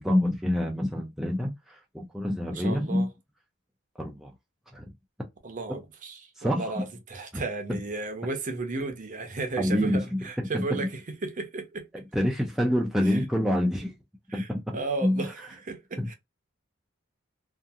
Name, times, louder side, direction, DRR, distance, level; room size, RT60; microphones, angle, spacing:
voice 1, 0.0-3.1 4.0-4.3 4.7-4.9 6.4-6.8 7.3-7.4 7.7-7.8 9.6-10.2 10.5-10.9 12.1-13.9 14.3-15.3 16.0-16.1, left 1 dB, ahead, 0.3 m, -27 dB
voice 2, 2.5-3.1 5.4-11.8 13.0-13.2 14.3-16.1, right 3 dB, 40° right, 0.6 m, -34 dB
2.7 x 2.4 x 2.4 m
head